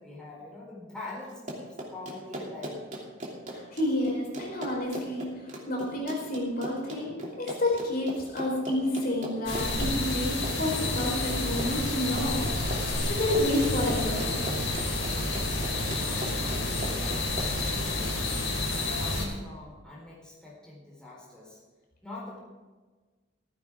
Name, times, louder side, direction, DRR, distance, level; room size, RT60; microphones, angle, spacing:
voice 1, 0.0-3.1 14.8-18.2 18.9-21.6 22.0-22.4, left 2 dB, 5° left, -6 dB, 4.3 m, -44 dB
Run, 1.3-17.8, right 1 dB, 35° right, 2.8 m, -39 dB
voice 2, 3.5-5.3 5.7-14.4, left 1 dB, 50° left, -1 dB, 4.4 m, -30 dB
sound 1, 9.5-19.3, left 2 dB, 80° left, 4.0 m, -29 dB
15.0 x 15.0 x 3.7 m, 1.3 s
head